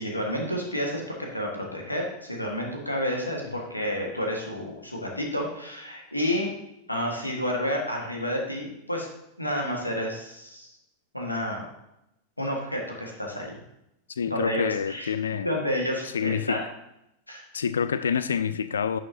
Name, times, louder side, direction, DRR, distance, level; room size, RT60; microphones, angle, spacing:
voice 1, 0.0-6.5 6.9-9.1 9.4-10.7 11.1-11.6 12.4-13.6 14.2-15.1 15.4-16.6 17.3-17.4, equal, 85° left, 0 dB, 1.7 m, -30 dB
voice 2, 14.2-15.5 16.1-16.6 17.5-19.0, left 7 dB, 70° left, 13 dB, 0.3 m, -27 dB
10.5 x 6.6 x 2.8 m, 0.84 s
figure-of-eight pair, 90°, 0 cm